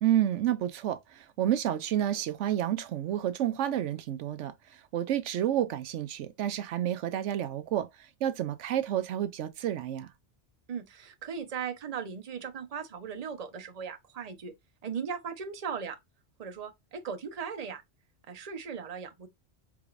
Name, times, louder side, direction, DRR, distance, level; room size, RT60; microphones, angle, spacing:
voice 1, 0.0-10.1, right 11 dB, 80° right, 0.9 m, -30 dB
voice 2, 10.7-14.5 14.8-16.0 16.4-17.8 18.3-19.3, right 6 dB, 35° right, 0.8 m, -38 dB
4.7 x 3.9 x 2.5 m
omnidirectional pair, 1.2 m